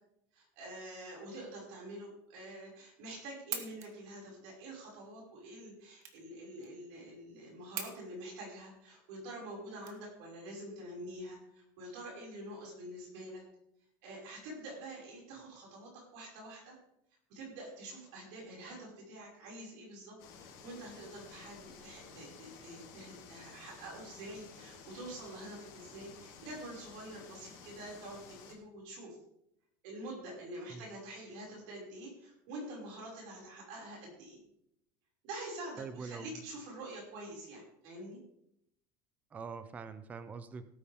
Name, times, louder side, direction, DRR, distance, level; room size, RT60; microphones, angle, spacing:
voice 1, 0.3-13.4 14.0-16.8 17.3-28.2 28.5-29.2 29.8-34.4 35.2-38.2, right 1 dB, 55° right, -2 dB, 6.0 m, -46 dB
sound 1, 3.3-10.5, right 7 dB, 30° right, 1.3 m, -46 dB
sound 2, 20.2-28.5, left 6 dB, 50° left, 3.3 m, -53 dB
voice 2, 35.8-36.4 39.3-40.7, right 5 dB, 15° right, 12 dB, 0.6 m, -44 dB
17.5 x 9.1 x 3.7 m, 0.77 s
cardioid pair, 180°, 10 cm